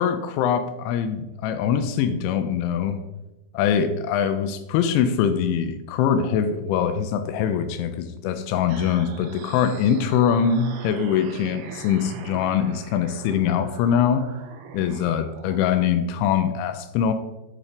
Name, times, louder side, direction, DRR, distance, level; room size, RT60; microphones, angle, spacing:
voice 1, 0.0-3.0 3.5-14.2 14.7-17.1, left 8 dB, 90° left, 8 dB, 2.7 m, -23 dB
sound 1, 8.7-15.6, right 6 dB, 80° right, 3.4 m, -42 dB
9.9 x 4.2 x 5.0 m, 0.99 s
omnidirectional pair, 6.0 m